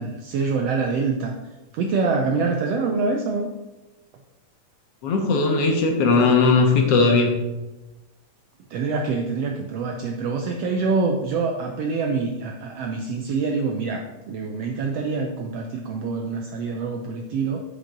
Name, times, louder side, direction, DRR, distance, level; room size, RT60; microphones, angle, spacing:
voice 1, 0.0-1.4 1.7-3.5 8.7-17.6, right 4 dB, 80° right, 3 dB, 1.5 m, -25 dB
voice 2, 5.0-7.4, left 4 dB, 60° left, 3 dB, 2.0 m, -18 dB
9.0 x 5.1 x 5.1 m, 1.1 s
omnidirectional pair, 3.5 m